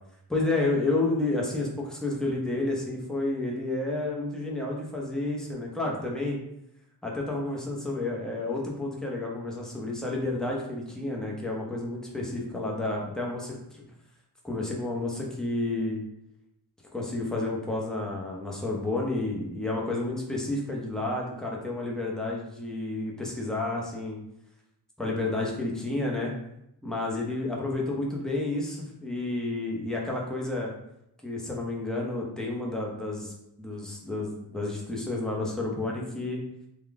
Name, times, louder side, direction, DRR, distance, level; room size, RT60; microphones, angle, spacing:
voice 1, 0.3-6.4 7.0-13.8 14.4-16.0 16.9-24.2 25.0-26.3 26.8-30.7 31.2-33.3 33.6-36.4, left 2 dB, ahead, -2 dB, 0.7 m, -30 dB
3.7 x 2.3 x 3.4 m, 0.79 s
wide cardioid pair, 105°, 42 cm